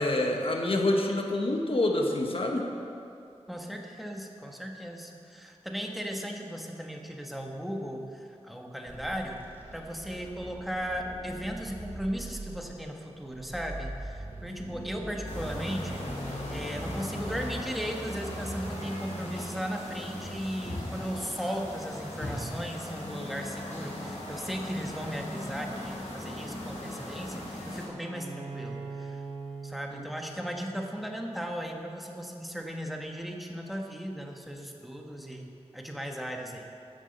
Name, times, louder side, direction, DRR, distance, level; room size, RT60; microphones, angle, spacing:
voice 1, 0.0-2.7, left 1 dB, 55° left, 1 dB, 1.5 m, -27 dB
voice 2, 3.5-9.4 9.7-29.2 29.6-36.7, equal, ahead, 1 dB, 1.5 m, -37 dB
sound 1, 8.9-19.7, right 1 dB, 20° right, 2.5 m, -42 dB
sound 2, 15.3-27.9, left 1 dB, 80° left, 3.0 m, -38 dB
Bowed string instrument, 28.0-31.7, right 4 dB, 90° right, 1.8 m, -42 dB
14.0 x 7.4 x 6.7 m, 2.5 s
wide cardioid pair, 80°, 12 cm